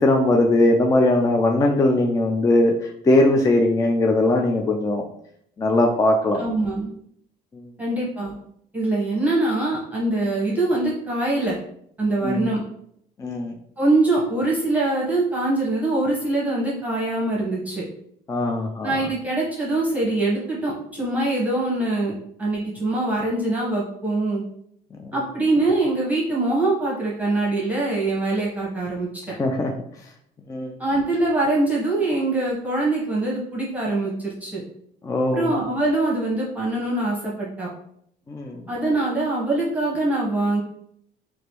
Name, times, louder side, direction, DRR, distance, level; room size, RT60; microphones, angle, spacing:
voice 1, 0.0-5.0 5.6-6.4 7.5-7.7 12.2-12.5 13.2-13.5 18.3-19.0 25.0-25.2 29.3-29.7 30.5-30.7 35.0-35.5 38.3-38.7, left 1 dB, 20° left, 3 dB, 0.3 m, -20 dB
voice 2, 6.4-6.9 7.8-8.3 8.7-11.6 12.0-12.6 13.8-17.8 18.8-22.1 22.4-24.4 25.1-29.3 30.8-34.6 35.3-37.7 38.7-40.6, right 2 dB, 10° right, -5 dB, 1.0 m, -23 dB
3.1 x 2.6 x 2.9 m, 0.70 s
cardioid pair, 110°, 17 cm